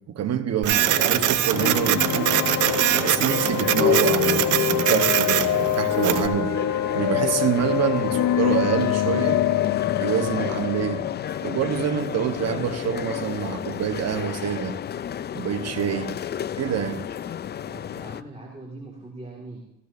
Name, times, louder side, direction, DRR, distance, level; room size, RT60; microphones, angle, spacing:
voice 1, 0.1-2.4 2.9-6.5 6.9-9.4 9.9-11.1 11.4-14.8 15.3-16.2 16.6-17.0, right 8 dB, 60° right, 1.1 m, -26 dB
Printer, 0.6-6.3, right 13 dB, 80° right, 0.7 m, -23 dB
sound 1, 0.7-18.2, left 9 dB, 35° left, 0.4 m, -33 dB
sound 2, 1.5-13.2, left 11 dB, 65° left, 0.8 m, -25 dB
voice 2, 17.7-19.6, right 2 dB, 20° right, 2.1 m, -41 dB
15.5 x 15.0 x 2.7 m
cardioid pair, 90°, 30 cm